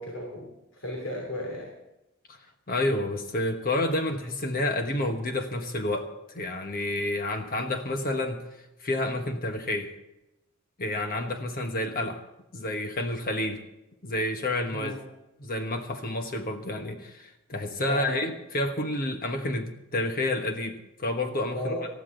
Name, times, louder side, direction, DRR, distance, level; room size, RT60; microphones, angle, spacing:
voice 1, 0.0-1.7 14.7-15.0 17.8-18.3 21.5-21.9, left 1 dB, 65° left, 0 dB, 3.0 m, -34 dB
voice 2, 2.7-6.1 6.3-8.4 8.8-9.9 10.8-12.2 12.5-13.6 14.0-15.0 15.4-21.7, left 1 dB, 40° left, 5 dB, 1.2 m, -29 dB
19.5 x 13.5 x 3.8 m, 0.92 s
head